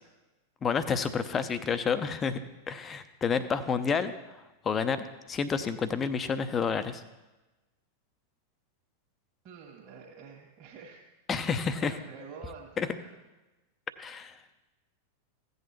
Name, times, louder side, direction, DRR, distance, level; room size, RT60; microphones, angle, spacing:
voice 1, 0.6-2.4 2.7-7.0 11.3-11.9 12.8-12.9 14.0-14.3, left 6 dB, 20° left, 12 dB, 0.6 m, -30 dB
voice 2, 9.4-11.0 11.6-13.2, right 5 dB, 35° right, -5 dB, 1.7 m, -48 dB
15.5 x 8.1 x 3.1 m, 1.1 s
figure-of-eight pair, 90°, 0 cm